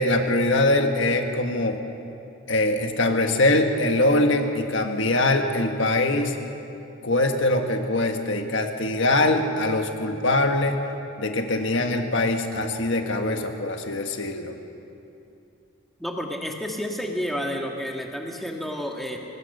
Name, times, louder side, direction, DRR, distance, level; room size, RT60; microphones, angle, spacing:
voice 1, 0.0-1.8 2.5-6.4 7.0-10.8 11.2-14.5, left 2 dB, 60° left, 4 dB, 1.6 m, -23 dB
voice 2, 16.0-19.2, equal, ahead, 0 dB, 1.7 m, -30 dB
25.0 x 20.0 x 6.8 m, 2.8 s
head